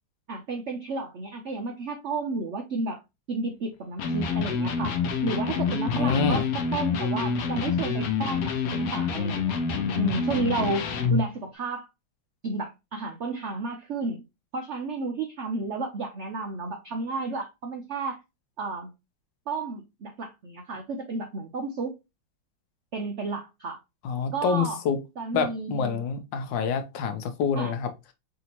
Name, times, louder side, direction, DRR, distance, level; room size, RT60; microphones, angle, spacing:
voice 1, 0.3-3.0 3.3-5.0 5.2-6.4 6.7-9.6 10.0-10.9 11.1-11.9 12.4-14.2 14.5-18.2 18.6-18.9 19.5-21.9 22.9-23.8 24.3-24.8 25.2-26.0 27.6-27.7, right 3 dB, 75° right, 0.6 m, -32 dB
Electric guitar, 4.0-11.3, left 5 dB, 65° left, 1.0 m, -27 dB
voice 2, 5.9-6.4 24.0-25.0 25.3-27.9, left 6 dB, 80° left, 1.4 m, -27 dB
4.9 x 2.7 x 2.9 m
omnidirectional pair, 2.0 m